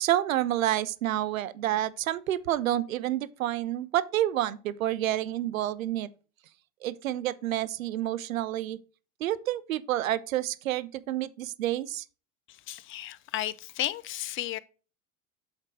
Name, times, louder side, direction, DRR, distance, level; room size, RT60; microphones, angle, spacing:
voice 1, 0.0-6.1 6.8-8.8 9.2-12.0, right 13 dB, 85° right, 0.6 m, -29 dB
voice 2, 12.5-14.6, left 14 dB, 35° left, 0.4 m, -34 dB
8.1 x 3.7 x 4.6 m
hypercardioid pair, 80°, 40 cm